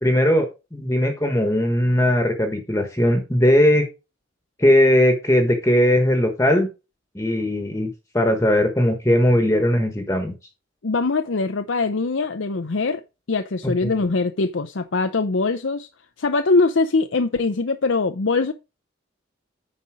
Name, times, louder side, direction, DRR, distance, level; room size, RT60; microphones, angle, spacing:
voice 1, 0.0-3.8 4.6-6.7 7.1-10.3 13.6-13.9, left 1 dB, 15° left, 1.3 m, -19 dB
voice 2, 10.8-13.0 13.3-15.9 16.2-18.5, left 3 dB, 80° left, 0.7 m, -22 dB
9.5 x 5.4 x 4.9 m
head